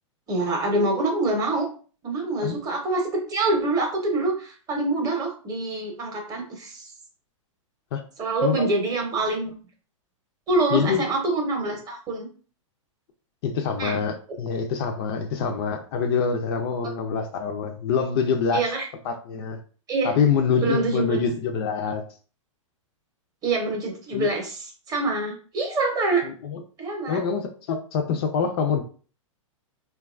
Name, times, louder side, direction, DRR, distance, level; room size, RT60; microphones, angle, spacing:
voice 1, 0.3-1.7 2.0-6.9 8.2-9.6 10.5-12.3 13.8-14.0 18.5-18.9 19.9-20.1 20.5-21.2 23.4-24.6 24.9-26.2 26.8-27.2, right 2 dB, 20° right, 1 dB, 0.7 m, -25 dB
voice 2, 8.4-8.7 10.7-11.0 13.4-18.6 19.0-19.6 20.0-22.0 24.1-24.3 26.2-26.6 27.1-28.8, left 6 dB, 45° left, 4 dB, 0.4 m, -25 dB
2.7 x 2.3 x 2.4 m, 0.39 s
hypercardioid pair, 130°, 17 cm